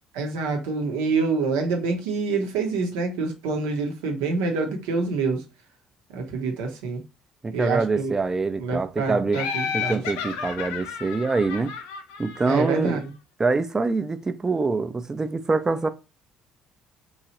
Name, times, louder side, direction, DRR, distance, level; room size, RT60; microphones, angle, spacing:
voice 1, 0.1-5.4 6.1-7.0 7.5-8.1 8.6-10.0 12.5-13.0, right 4 dB, 80° right, 0.8 m, -26 dB
voice 2, 7.4-9.4 9.7-11.7 12.2-13.0 13.4-15.9, right 3 dB, 25° right, 0.4 m, -25 dB
Laughter, 9.3-13.0, left 7 dB, 80° left, 0.5 m, -32 dB
2.9 x 2.3 x 2.9 m
hypercardioid pair, 60°, 2 cm